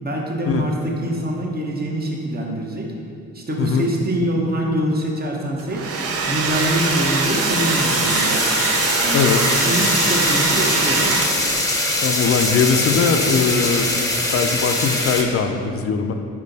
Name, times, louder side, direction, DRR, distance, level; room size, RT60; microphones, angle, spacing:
voice 1, 0.0-2.9 3.3-8.4 9.0-9.3 9.6-11.2, right 1 dB, 30° right, -1 dB, 1.0 m, -24 dB
Domestic sounds home sounds, 5.6-11.6, right 4 dB, 50° right, 0.6 m, -22 dB
sound 1, 6.5-15.2, left 1 dB, 10° left, 0.8 m, -23 dB
voice 2, 12.0-13.9 14.3-16.1, left 6 dB, 50° left, 6 dB, 0.5 m, -20 dB
5.4 x 4.5 x 4.0 m, 2.4 s
cardioid pair, 90°, 30 cm